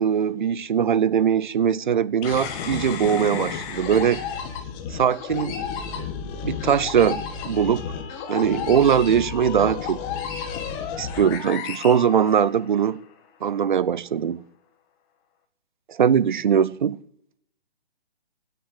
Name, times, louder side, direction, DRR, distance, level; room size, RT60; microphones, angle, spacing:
voice 1, 0.0-4.2 4.9-5.6 6.4-7.8 8.3-10.0 11.0-13.0 13.4-14.4 15.9-17.0, right 8 dB, 50° right, 0.7 m, -21 dB
sound 1, 2.2-12.8, left 7 dB, 20° left, 1.4 m, -32 dB
16.5 x 6.8 x 8.0 m
figure-of-eight pair, 140°, 32 cm